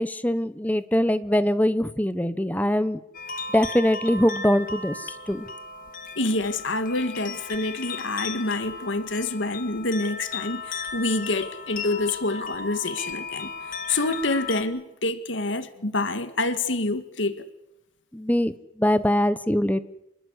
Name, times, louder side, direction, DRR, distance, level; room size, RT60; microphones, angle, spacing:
voice 1, 0.0-3.0 3.5-4.9 5.3-5.5 18.1-18.5 18.8-19.8, equal, 10° left, 1.0 m, -22 dB
sound 1, 3.1-14.6, left 4 dB, 45° left, 2.3 m, -36 dB
voice 2, 6.2-17.5, left 2 dB, 85° left, 1.9 m, -27 dB
27.5 x 20.5 x 8.2 m
head